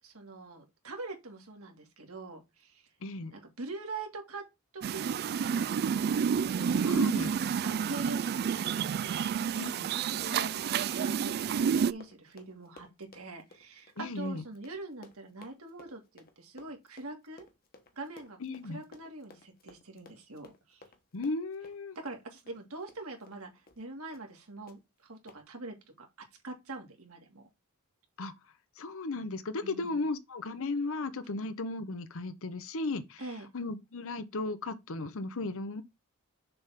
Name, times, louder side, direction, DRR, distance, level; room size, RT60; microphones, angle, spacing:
voice 1, 0.0-2.9 3.3-4.5 4.7-6.3 7.6-17.5 18.0-18.4 18.6-20.8 22.0-26.1 26.4-27.5 29.6-30.0 33.2-33.5, right 3 dB, 70° right, 2.0 m, -44 dB
voice 2, 3.0-3.3 6.8-7.4 9.5-9.9 14.0-14.4 18.4-18.8 21.1-22.0 28.2-28.3 28.8-33.2 33.5-35.8, left 3 dB, 65° left, 0.8 m, -35 dB
sound 1, 4.8-11.9, right 7 dB, 45° right, 0.3 m, -29 dB
Run, 6.9-23.4 23.7-23.8 24.1-24.4 24.7-24.8 25.3-25.4, left 3 dB, 45° left, 1.2 m, -57 dB
6.8 x 3.5 x 5.8 m
head